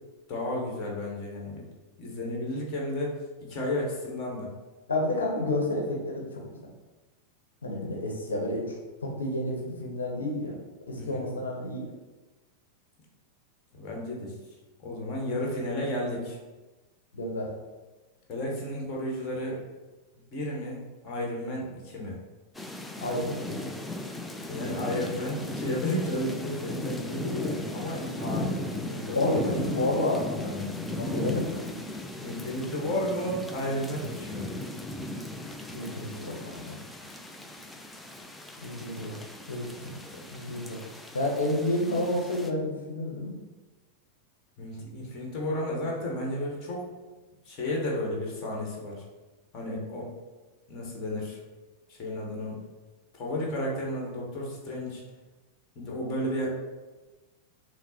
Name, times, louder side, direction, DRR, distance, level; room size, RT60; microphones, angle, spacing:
voice 1, 0.3-1.7 2.0-3.1 3.4-4.5 11.0-11.3 13.7-14.3 14.8-16.4 18.3-19.6 20.3-22.2 24.5-29.5 30.4-30.7 31.0-31.4 32.2-34.5 39.8-40.2 44.6-46.9 47.4-49.0 49.5-50.1 50.7-51.4 51.9-52.6 53.1-55.0 55.7-56.5, left 1 dB, 35° left, -2 dB, 1.3 m, -33 dB
voice 2, 4.9-6.4 7.6-8.8 9.0-10.6 10.9-11.9 17.1-17.5 23.0-23.5 29.1-30.3 30.9-31.6 35.7-36.8 38.6-39.2 39.5-40.0 40.3-40.8 41.1-43.3, left 1 dB, 70° left, -1 dB, 1.0 m, -30 dB
sound 1, 22.5-42.5, left 1 dB, 5° left, 0.4 m, -37 dB
5.8 x 2.0 x 4.1 m, 1.2 s
figure-of-eight pair, 90°, 0 cm